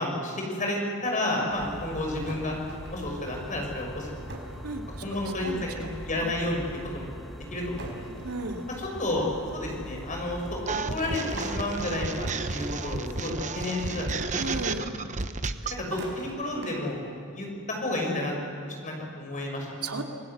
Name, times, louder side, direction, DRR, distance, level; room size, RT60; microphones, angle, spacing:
voice 1, 0.0-2.6 2.9-4.3 5.0-6.6 6.9-7.1 7.5-8.1 8.8-14.6 15.8-17.1 17.3-18.3 18.8-19.7, left 1 dB, 35° left, 0 dB, 6.3 m, -31 dB
sound 1, 1.5-13.2, equal, ahead, 1.6 m, -42 dB
sound 2, 2.3-3.2 4.3-4.6 4.9-5.5 6.6-6.7 7.8-9.1 11.0-12.9 13.6-14.0 14.4-14.5 15.6-17.1, right 2 dB, 55° right, 4.8 m, -42 dB
voice 2, 8.2-8.6 14.4-15.0 19.8-20.0, right 2 dB, 80° right, 3 dB, 2.5 m, -33 dB
sound 3, 10.7-15.8, right 4 dB, 35° right, 1.0 m, -32 dB
27.5 x 20.5 x 8.1 m, 2.6 s
head